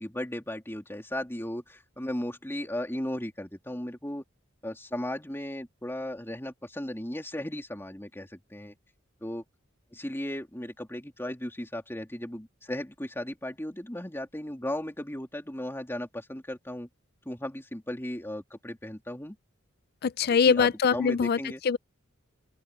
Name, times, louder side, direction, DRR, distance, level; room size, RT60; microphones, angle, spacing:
voice 1, 0.0-4.2 4.6-8.7 9.2-9.4 9.9-16.9 17.2-19.4 20.5-21.6, left 1 dB, 10° left, 3.0 m, -36 dB
voice 2, 20.0-21.4 21.6-21.8, left 6 dB, 50° left, 0.4 m, -23 dB
open air
head